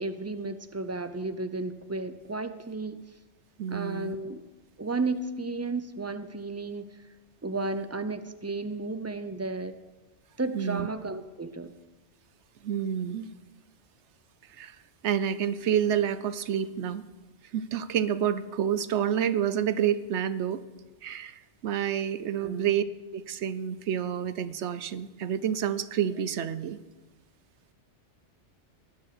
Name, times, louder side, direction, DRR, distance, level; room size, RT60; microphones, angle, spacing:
voice 1, 0.0-3.0 3.7-4.4 4.8-6.9 7.4-9.8 10.4-11.8 22.4-22.7, right 3 dB, 20° right, 11 dB, 0.4 m, -33 dB
voice 2, 3.6-4.2 10.5-10.9 12.6-13.3 14.6-14.8 15.0-17.0 17.5-20.6 21.0-22.8 23.1-26.8, right 9 dB, 70° right, 14 dB, 1.0 m, -28 dB
19.0 x 7.1 x 6.7 m, 1.1 s
omnidirectional pair, 1.2 m